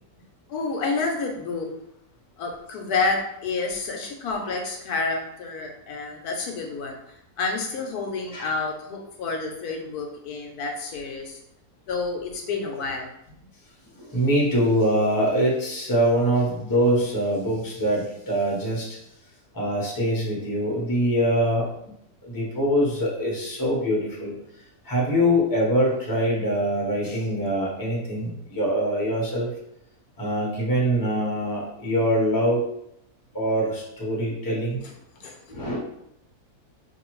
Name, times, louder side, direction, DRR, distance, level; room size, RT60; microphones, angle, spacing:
voice 1, 0.5-1.7 2.4-7.0 7.4-11.4 11.9-13.1 35.2-35.4, left 4 dB, 80° left, 2 dB, 1.1 m, -29 dB
voice 2, 14.0-19.0 19.5-21.7 22.2-24.3 24.8-29.5 30.2-32.6 33.3-34.8 35.5-35.8, equal, 15° left, -4 dB, 0.9 m, -24 dB
4.4 x 2.7 x 3.0 m, 0.77 s
omnidirectional pair, 1.6 m